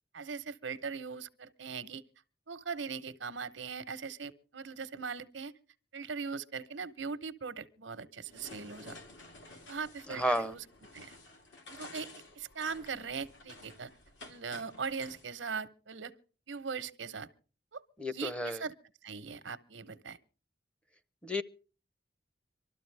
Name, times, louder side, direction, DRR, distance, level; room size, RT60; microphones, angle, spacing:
voice 1, 0.1-2.0 2.5-5.5 5.9-9.0 9.7-10.7 10.9-11.1 11.7-12.1 12.4-13.9 14.3-16.1 16.5-17.3 17.7-18.7 19.0-20.2, right 5 dB, 85° right, 0.9 m, -40 dB
sound 1, 8.3-15.3, left 2 dB, 80° left, 3.0 m, -52 dB
voice 2, 10.2-10.5 18.0-18.6 21.2-21.4, equal, 5° left, 0.6 m, -31 dB
24.0 x 13.0 x 3.3 m
head